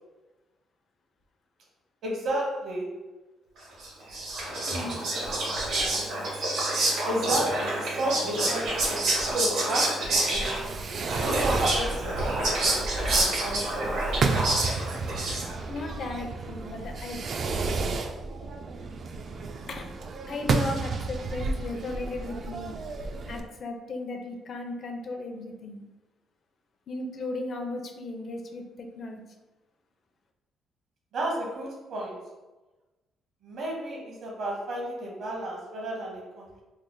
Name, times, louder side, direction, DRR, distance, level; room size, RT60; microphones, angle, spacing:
voice 1, 2.0-2.9 4.8-5.2 5.5-6.1 7.1-10.6 11.1-14.5 31.1-32.2 33.4-36.6, right 1 dB, 70° right, -2 dB, 1.1 m, -33 dB
Whispering, 3.8-15.8, right 2 dB, 85° right, 1.5 m, -28 dB
voice 2, 4.7-5.0 15.6-17.3 19.7-19.9 20.3-22.8 23.3-25.8 26.9-29.2, left 2 dB, 55° left, 3 dB, 0.5 m, -36 dB
Fireworks, 10.3-23.4, right 3 dB, 55° right, 0.3 m, -32 dB
3.2 x 2.1 x 3.8 m, 1.1 s
cardioid pair, 90°, 0 cm